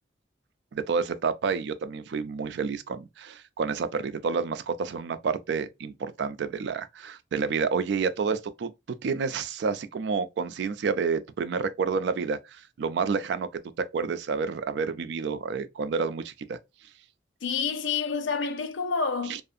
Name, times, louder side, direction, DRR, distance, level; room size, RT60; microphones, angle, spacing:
voice 1, 0.7-8.7 9.0-13.5 13.9-16.6 19.3-19.4, right 5 dB, 60° right, 0.3 m, -29 dB
voice 2, 17.4-19.4, left 5 dB, 75° left, 0.4 m, -28 dB
2.5 x 2.4 x 2.5 m
head